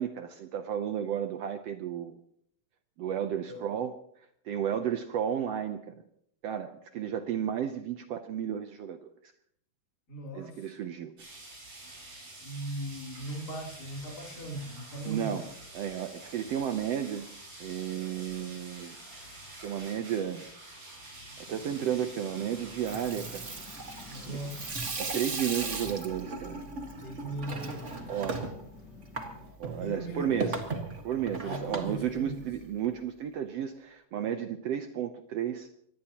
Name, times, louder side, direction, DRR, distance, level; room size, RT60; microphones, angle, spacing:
voice 1, 0.0-2.2 3.0-3.9 4.5-6.0 6.4-9.1 10.3-11.1 15.1-15.5 15.7-17.3 17.6-19.0 19.6-20.4 21.5-23.5 24.3-24.4 25.0-26.6 28.1-28.4 29.6-30.6 31.0-35.7, right 9 dB, 85° right, 7 dB, 1.4 m, -33 dB
voice 2, 10.1-10.7 12.4-15.4 24.1-24.6 27.0-28.3 29.8-30.7 31.4-32.4, right 1 dB, 25° left, -2 dB, 3.9 m, -39 dB
sound 1, 11.2-24.7, right 1 dB, 65° right, 9.4 m, -48 dB
sound 2, 21.5-29.5, left 5 dB, 40° left, 1.6 m, -52 dB
Water tap faucet / Sink (filling or washing), 22.7-32.9, right 3 dB, 35° right, 1.2 m, -38 dB
24.5 x 18.5 x 3.0 m, 0.68 s
omnidirectional pair, 4.0 m